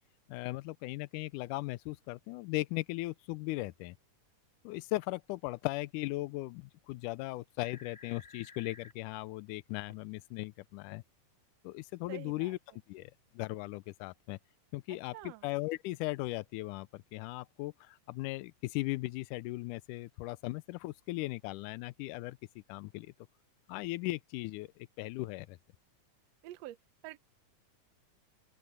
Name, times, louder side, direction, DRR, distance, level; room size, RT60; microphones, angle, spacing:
voice 1, 0.3-4.0 4.6-11.0 11.6-12.6 12.9-14.4 14.7-23.1 23.7-25.6, left 20 dB, 85° left, 2.1 m, -38 dB
sound 1, 7.6-8.9 9.9-10.0, left 2 dB, 20° left, 2.7 m, -54 dB
voice 2, 12.1-12.5 14.9-15.4 26.4-26.8 27.0-27.2, right 16 dB, 70° right, 1.7 m, -47 dB
open air
omnidirectional pair, 3.6 m